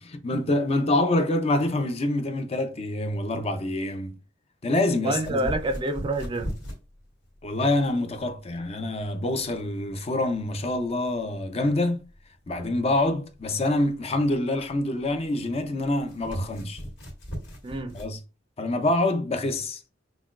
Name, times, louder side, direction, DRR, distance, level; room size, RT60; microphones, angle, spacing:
voice 1, 0.0-4.2 4.6-5.4 7.4-12.1 12.5-16.8 17.9-18.2 18.6-19.8, left 2 dB, 35° left, 0.5 m, -26 dB
voice 2, 5.0-6.6 17.6-18.0, right 2 dB, 25° right, 0.4 m, -28 dB
sound 1, 5.1-18.2, equal, 65° left, 2.1 m, -40 dB
5.8 x 2.2 x 2.4 m
head